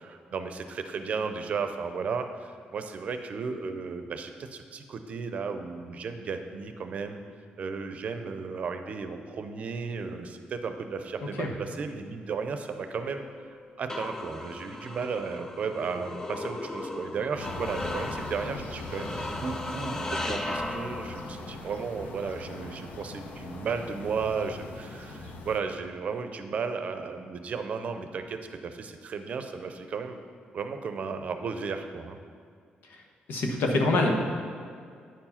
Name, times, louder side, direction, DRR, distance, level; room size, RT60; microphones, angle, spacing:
voice 1, 0.0-7.2 7.6-13.2 13.8-30.2 30.5-32.2, right 5 dB, 45° right, 8 dB, 0.6 m, -34 dB
sound 1, 13.0-21.5, left 2 dB, 15° left, 0.4 m, -37 dB
sound 2, 17.3-25.6, left 2 dB, 65° left, 0.8 m, -41 dB
voice 2, 33.3-34.2, left 2 dB, 85° left, 2 dB, 1.2 m, -24 dB
9.2 x 4.7 x 5.7 m, 2.1 s
cardioid pair, 145°, 3 cm